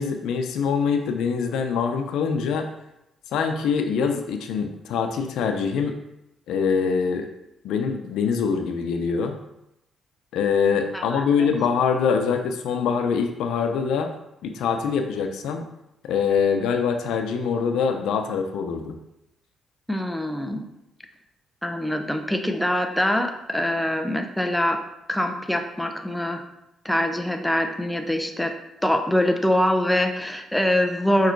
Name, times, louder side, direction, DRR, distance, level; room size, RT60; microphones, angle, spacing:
voice 1, 0.0-2.7 3.3-6.0 6.5-7.3 7.6-9.4 10.3-14.1 14.4-15.6 16.0-18.9, left 6 dB, 85° left, 6 dB, 0.7 m, -24 dB
voice 2, 10.9-11.5 19.9-20.6 21.6-24.8 25.1-26.4 26.8-28.5 28.8-31.3, left 1 dB, 5° left, 5 dB, 0.8 m, -24 dB
5.5 x 4.8 x 4.6 m, 0.86 s
cardioid pair, 90°, 0 cm